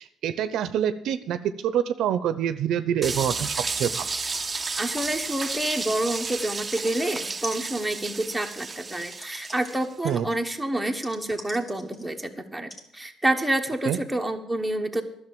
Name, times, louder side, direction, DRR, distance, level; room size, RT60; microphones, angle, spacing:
voice 1, 0.0-4.1 10.0-10.3 13.8-14.0, right 9 dB, 75° right, 13 dB, 0.6 m, -26 dB
sound 1, 3.0-9.9, right 4 dB, 25° right, 0.6 m, -32 dB
sound 2, 4.3-4.5 4.8-7.0 7.4-12.2 12.7-12.9 13.7-13.8, equal, 20° left, 2.0 m, -44 dB
voice 2, 4.8-15.0, right 1 dB, 5° right, 3 dB, 1.3 m, -28 dB
11.0 x 6.7 x 8.4 m, 0.74 s
cardioid pair, 90°, 0 cm